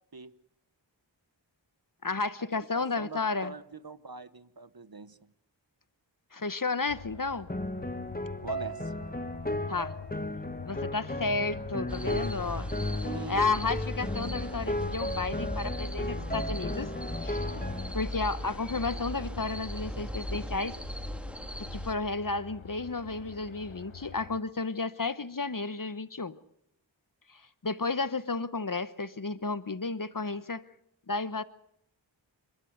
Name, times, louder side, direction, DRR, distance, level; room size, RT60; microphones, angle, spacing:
voice 1, 2.0-3.5 6.3-7.5 9.7-10.0 10.7-12.7 13.3-16.9 17.2-17.5 17.9-20.8 21.7-26.3 27.3-30.6 31.1-31.4, left 3 dB, 45° left, 14 dB, 1.1 m, -32 dB
voice 2, 2.7-5.2 8.4-8.9 13.0-13.7, right 4 dB, 50° right, 14 dB, 1.2 m, -43 dB
sound 1, 6.9-24.4, left 5 dB, 80° left, 1.4 m, -47 dB
sound 2, 7.5-17.9, left 1 dB, 20° left, 1.6 m, -35 dB
sound 3, 11.9-21.9, equal, ahead, 1.9 m, -38 dB
28.5 x 13.0 x 8.0 m, 0.76 s
wide cardioid pair, 40°, 46 cm